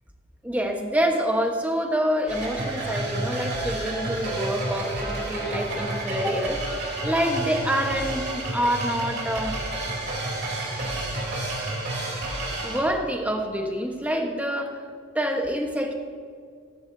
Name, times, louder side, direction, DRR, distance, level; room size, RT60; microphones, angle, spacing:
voice 1, 0.4-6.6 7.0-9.6 12.6-14.8 15.1-15.9, equal, 5° right, 3 dB, 1.1 m, -26 dB
sound 1, 2.3-12.8, right 2 dB, 50° right, 3.0 m, -30 dB
15.0 x 14.5 x 2.7 m, 2.2 s
head